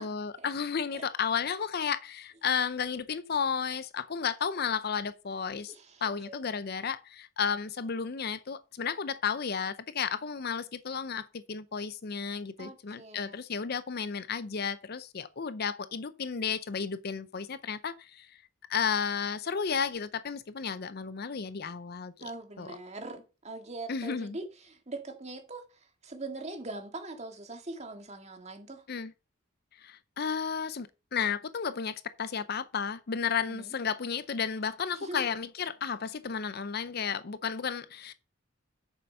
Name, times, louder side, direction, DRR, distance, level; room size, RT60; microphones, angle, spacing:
voice 1, 0.0-5.7 6.0-18.4 18.7-22.3 22.6-22.7 23.9-24.4 28.9-29.1 29.8-38.1, left 6 dB, 45° left, 0.5 m, -33 dB
voice 2, 5.7-6.4 12.6-13.4 22.2-25.7 26.0-28.8 33.5-33.7 34.9-35.3, right 2 dB, 30° right, 1.9 m, -42 dB
8.9 x 6.8 x 5.4 m
head